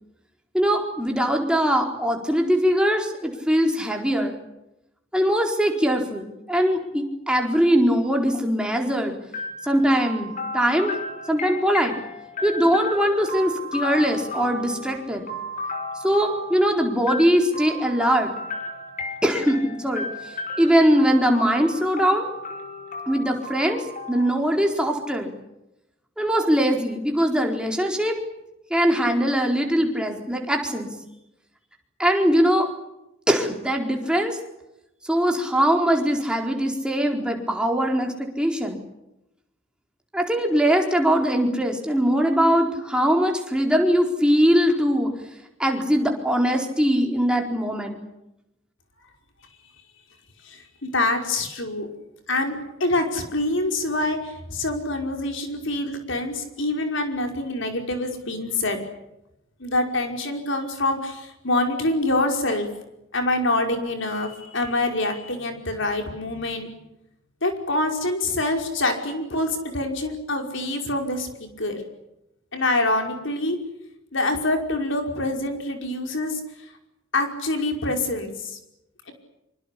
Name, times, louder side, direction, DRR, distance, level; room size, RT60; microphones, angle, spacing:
voice 1, 0.5-4.3 5.1-9.1 9.6-10.9 11.3-12.0 12.4-15.3 16.0-18.3 19.2-20.1 20.6-22.3 23.1-25.3 26.2-28.2 28.7-30.9 32.0-32.7 33.3-34.4 35.0-38.8 40.1-45.1 45.6-48.0, equal, 5° right, 2 dB, 4.4 m, -21 dB
sound 1, 9.3-25.1, left 2 dB, 40° left, 5.5 m, -34 dB
voice 2, 50.4-51.9 52.3-58.8 59.6-62.7 63.1-66.7 67.4-71.8 72.5-73.6 74.1-76.7 77.1-78.6, left 2 dB, 65° left, 4 dB, 5.4 m, -25 dB
26.5 x 25.5 x 8.5 m, 0.89 s
head